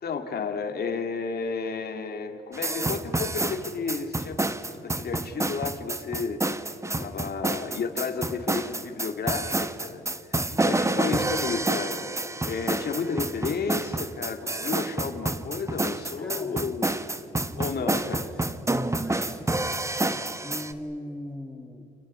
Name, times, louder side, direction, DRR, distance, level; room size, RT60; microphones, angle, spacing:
voice 1, 0.0-4.4 4.7-6.4 7.0-10.0 10.3-17.0 17.6-18.2, left 5 dB, 50° left, 5 dB, 2.7 m, -32 dB
sound 1, 2.5-20.7, right 2 dB, 15° right, 1.3 m, -28 dB
voice 2, 10.5-11.6 14.8-14.9 16.2-16.6 17.5-18.4 18.9-19.7 20.4-21.9, left 1 dB, 5° left, 4 dB, 2.4 m, -41 dB
30.0 x 29.0 x 5.8 m, 2.8 s
cardioid pair, 90°, 20 cm